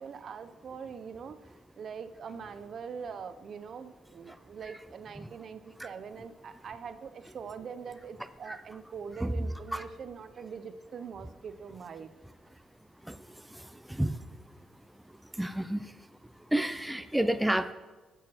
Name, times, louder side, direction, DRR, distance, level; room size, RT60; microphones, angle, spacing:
voice 1, 0.0-1.4 1.8-12.1, right 6 dB, 55° right, 11 dB, 0.6 m, -43 dB
voice 2, 15.4-15.8 16.5-17.7, right 1 dB, 5° right, 10 dB, 0.4 m, -29 dB
8.5 x 6.6 x 4.3 m, 1.2 s
cardioid pair, 90°, 0 cm